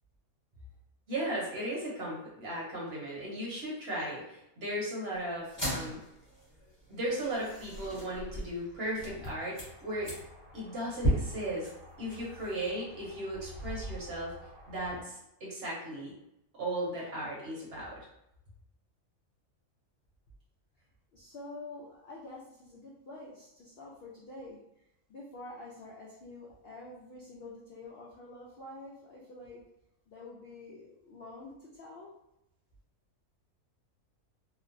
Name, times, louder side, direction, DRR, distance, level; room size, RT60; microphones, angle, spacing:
voice 1, 1.1-6.0 6.9-10.1 10.5-11.7 12.0-14.3 14.7-16.1 16.6-18.1, right 1 dB, 50° right, -5 dB, 0.9 m, -36 dB
sound 1, 5.4-15.0, equal, 20° left, 1.1 m, -38 dB
voice 2, 21.1-24.6 25.1-29.6 30.1-32.1, left 2 dB, 70° left, -4 dB, 0.5 m, -47 dB
2.9 x 2.0 x 2.5 m, 0.84 s
omnidirectional pair, 1.6 m